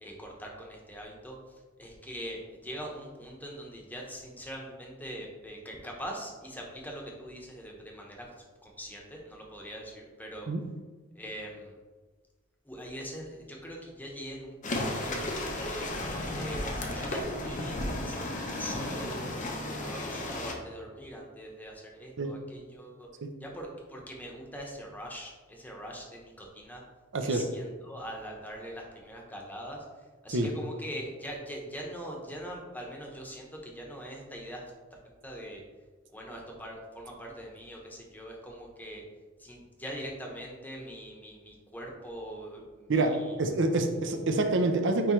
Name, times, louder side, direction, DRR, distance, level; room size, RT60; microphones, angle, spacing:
voice 1, 0.0-8.3 8.6-10.5 11.1-11.8 12.6-16.1 16.3-23.1 23.4-26.8 27.2-34.6 34.9-35.6 36.1-39.0 39.4-43.4, equal, 10° left, -1 dB, 1.0 m, -42 dB
sound 1, 14.6-20.5, left 1 dB, 40° left, 0.8 m, -34 dB
voice 2, 27.1-27.4 30.3-30.5 42.9-45.1, right 2 dB, 60° right, 5 dB, 0.7 m, -27 dB
9.3 x 3.3 x 3.1 m, 1.3 s
head